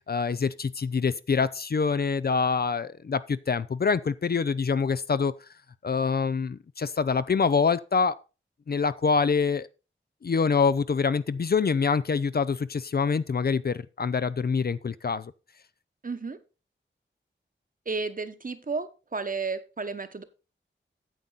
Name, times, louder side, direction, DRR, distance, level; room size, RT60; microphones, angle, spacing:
voice 1, 0.1-5.3 5.8-8.2 8.7-9.7 10.2-15.3, left 5 dB, 50° left, 0.5 m, -25 dB
voice 2, 16.0-16.4 17.9-20.2, right 4 dB, 40° right, 1.0 m, -32 dB
9.2 x 7.6 x 4.0 m
wide cardioid pair, 80°, 21 cm